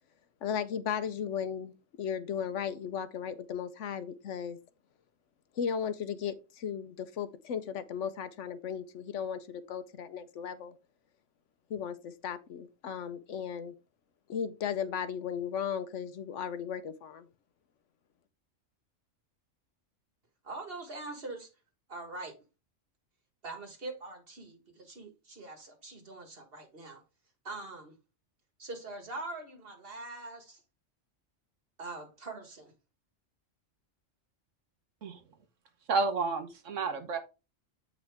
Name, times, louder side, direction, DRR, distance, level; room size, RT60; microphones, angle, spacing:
voice 1, 0.4-4.6 5.6-10.7 11.7-13.7 14.3-17.2, left 7 dB, 70° left, 1.0 m, -36 dB
voice 2, 20.4-21.5 21.9-22.4 23.4-27.0 27.4-27.9 28.6-30.6 31.8-32.7, right 2 dB, 45° right, 1.8 m, -43 dB
voice 3, 35.9-37.2, right 4 dB, 70° right, 1.5 m, -30 dB
8.4 x 5.0 x 3.5 m
omnidirectional pair, 1.3 m